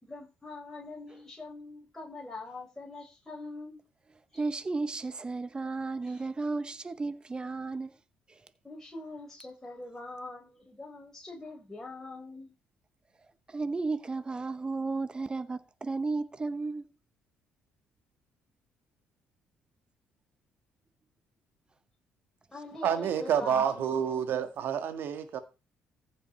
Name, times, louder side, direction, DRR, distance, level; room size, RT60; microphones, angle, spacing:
voice 1, 0.0-3.8 4.3-4.4 6.1-6.2 8.6-12.5 22.5-24.4, left 2 dB, 10° left, 4.1 m, -43 dB
voice 2, 4.3-7.9 8.3-8.4 13.5-16.9, right 3 dB, 25° right, 0.9 m, -33 dB
voice 3, 22.8-25.4, right 8 dB, 65° right, 1.6 m, -29 dB
14.5 x 5.4 x 4.4 m
cardioid pair, 85°, 4 cm